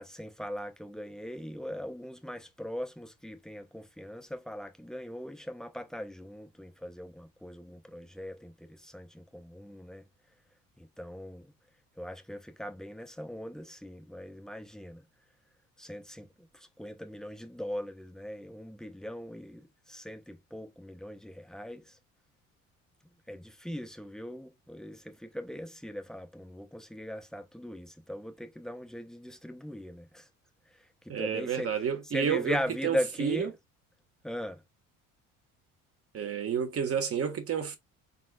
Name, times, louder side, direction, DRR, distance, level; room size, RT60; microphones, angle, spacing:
voice 1, 0.0-10.0 10.8-11.5 12.0-15.0 15.8-22.0 23.3-30.3 31.0-31.7 32.1-33.5 34.2-34.6, equal, ahead, 0.8 m, -39 dB
voice 2, 31.1-32.6 32.8-33.5 36.1-37.8, right 7 dB, 45° right, 1.3 m, -30 dB
4.3 x 3.8 x 2.3 m
supercardioid pair, 85°, 34 cm